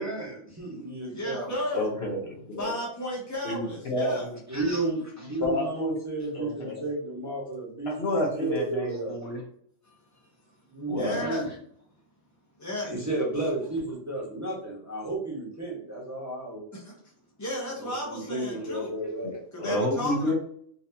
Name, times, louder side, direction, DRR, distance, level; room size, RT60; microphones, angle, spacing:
voice 1, 0.0-1.5 4.5-7.9 8.3-9.3 10.7-11.5 12.9-16.6 17.8-19.4, right 2 dB, 15° right, -5 dB, 1.1 m, -32 dB
voice 2, 1.1-1.9 2.6-4.3 9.8-10.0 10.8-11.4 12.6-13.1 16.7-16.9 17.4-18.9 19.5-20.4, left 1 dB, 20° left, -3 dB, 0.4 m, -33 dB
voice 3, 1.7-2.7 3.4-4.3 5.4-6.0 6.3-6.8 7.9-9.4 10.9-11.3 19.2-19.3 19.6-20.4, left 1 dB, 50° left, -1 dB, 1.0 m, -30 dB
4.1 x 2.7 x 2.8 m, 0.63 s
omnidirectional pair, 1.4 m